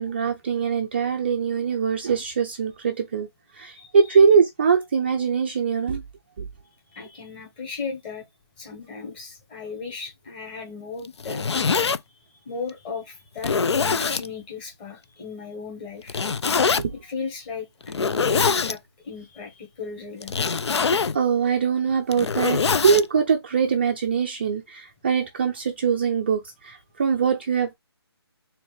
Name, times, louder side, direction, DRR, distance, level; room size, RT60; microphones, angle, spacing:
voice 1, 0.0-3.3 3.5-6.0 6.4-6.5 16.8-16.9 20.7-27.7, right 6 dB, 25° right, 0.4 m, -22 dB
voice 2, 3.7-4.2 6.9-8.3 8.6-11.4 12.3-16.2 16.9-18.8 19.0-20.4, left 5 dB, 20° left, 1.4 m, -36 dB
Zipper (clothing), 11.1-12.0 12.7-12.8 13.4-14.3 16.1-16.8 17.9-18.8 20.2-21.2 21.9-23.0, left 5 dB, 85° left, 0.4 m, -23 dB
4.3 x 2.5 x 3.3 m
figure-of-eight pair, 160°, 14 cm